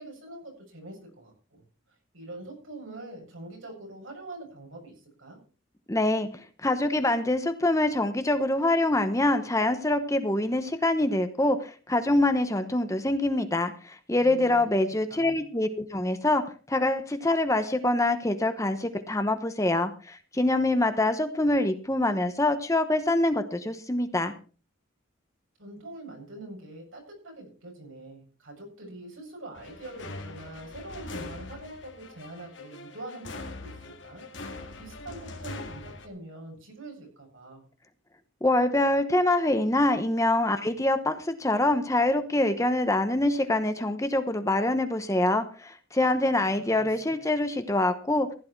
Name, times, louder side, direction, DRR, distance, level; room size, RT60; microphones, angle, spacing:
voice 1, 0.0-1.6 2.1-5.4 14.2-14.6 15.1-15.4 25.6-33.7 34.0-34.2 34.8-37.6 46.2-47.1, right 2 dB, 75° right, 1 dB, 7.5 m, -44 dB
voice 2, 5.9-6.3 6.6-16.4 16.7-24.3 38.4-48.3, left 2 dB, 15° left, 9 dB, 0.9 m, -25 dB
sound 1, 29.5-36.1, left 2 dB, 60° left, 2.2 m, -42 dB
15.5 x 10.5 x 4.6 m, 0.37 s
head